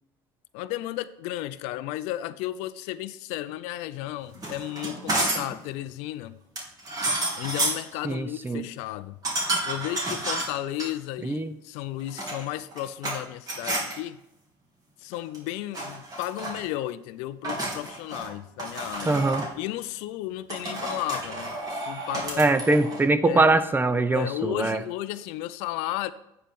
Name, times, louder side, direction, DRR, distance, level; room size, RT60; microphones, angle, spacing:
voice 1, 0.5-6.4 7.4-9.2 9.7-14.2 15.0-19.2 19.6-22.4 23.2-23.5 24.1-26.1, left 14 dB, 70° left, 15 dB, 0.4 m, -34 dB
sound 1, 4.3-5.6 6.6-7.9 9.2-10.9 12.0-13.2 13.5-14.0 15.1-15.5 15.7-16.6 17.4-18.3 18.6-19.5 20.5-23.0, right 2 dB, 35° right, 3.2 m, -30 dB
voice 2, 8.0-8.6 11.2-11.5 19.0-19.5 22.4-24.8, right 2 dB, 15° right, 11 dB, 0.7 m, -22 dB
9.2 x 4.4 x 5.3 m, 0.86 s
hypercardioid pair, 75°, 12 cm